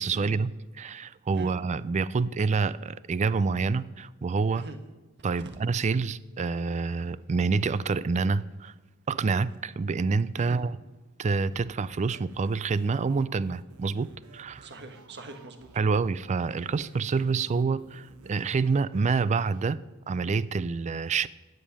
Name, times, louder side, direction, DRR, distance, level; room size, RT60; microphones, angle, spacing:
voice 1, 0.0-4.7 5.2-8.7 9.1-10.8 11.2-14.7 15.8-19.8 20.1-21.3, right 4 dB, 30° right, 0.3 m, -27 dB
sound 1, 11.2-19.7, right 2 dB, 70° right, 1.2 m, -54 dB
voice 2, 14.6-15.7, right 3 dB, 50° right, 1.5 m, -43 dB
16.0 x 5.3 x 9.8 m
head